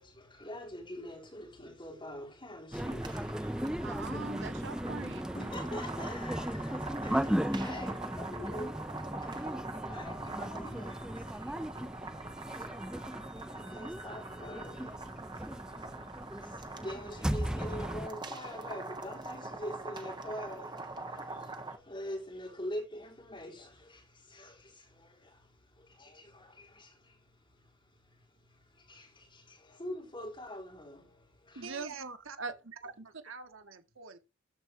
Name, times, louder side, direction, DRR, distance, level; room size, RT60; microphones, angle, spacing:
voice 1, 0.0-3.3 3.5-3.6 5.3-8.7 9.9-11.3 13.3-15.0 15.9-16.0 16.4-20.7 21.0-21.3 21.7-24.0 24.3-24.6 25.0-25.1 26.0-26.9 28.9-31.1 31.5-31.7, left 1 dB, 25° left, 3.8 m, -44 dB
sound 1, 2.7-18.1, equal, 5° right, 0.4 m, -37 dB
sound 2, 2.7-21.8, right 3 dB, 20° right, 1.4 m, -44 dB
voice 2, 3.8-5.2 31.5-32.5, right 4 dB, 65° right, 1.1 m, -41 dB
voice 3, 31.6-32.4 32.8-34.2, right 5 dB, 85° right, 1.7 m, -47 dB
13.5 x 4.8 x 4.7 m
head